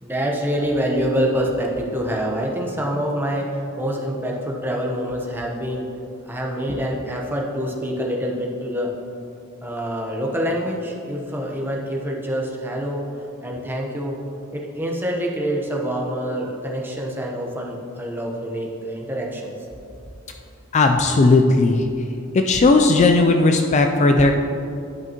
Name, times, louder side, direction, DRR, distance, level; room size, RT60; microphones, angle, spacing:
voice 1, 0.0-5.9 6.3-8.9 9.6-13.1 13.4-14.2 14.5-19.5, equal, 10° right, -1 dB, 0.9 m, -26 dB
voice 2, 20.7-21.8 22.3-24.3, left 3 dB, 35° left, 5 dB, 0.3 m, -16 dB
11.0 x 5.8 x 2.9 m, 2.6 s
head